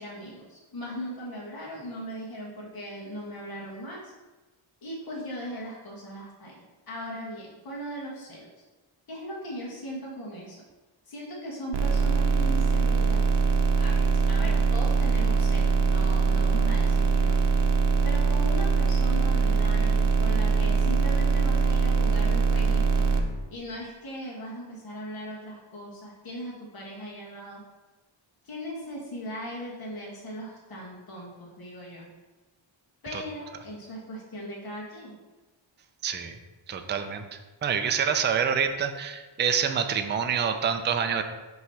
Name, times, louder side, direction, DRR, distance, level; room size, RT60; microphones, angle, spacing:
voice 1, 0.0-4.1 4.8-8.5 9.1-10.6 11.1-13.3 13.8-17.4 18.0-23.1 23.5-27.6 28.4-32.1 33.0-35.2, equal, 45° left, -4 dB, 1.6 m, -38 dB
sound 1, 11.7-23.2, right 4 dB, 60° right, 0.8 m, -22 dB
voice 2, 36.0-36.4 36.7-41.2, right 7 dB, 25° right, 7 dB, 0.3 m, -27 dB
5.8 x 3.2 x 5.6 m, 1.2 s
wide cardioid pair, 150°, 49 cm